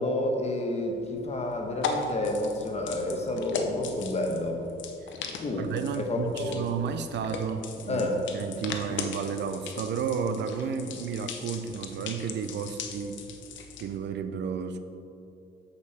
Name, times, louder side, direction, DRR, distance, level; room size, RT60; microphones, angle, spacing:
voice 1, 0.0-4.6 5.4-5.7 5.9-6.6 7.9-8.2, left 1 dB, 35° left, 2 dB, 1.2 m, -29 dB
sound 1, 0.7-14.0, left 5 dB, 70° left, 0.8 m, -39 dB
voice 2, 5.5-13.2 13.8-14.8, right 6 dB, 65° right, 9 dB, 0.5 m, -32 dB
8.0 x 5.3 x 4.2 m, 2.7 s
cardioid pair, 90°, 20 cm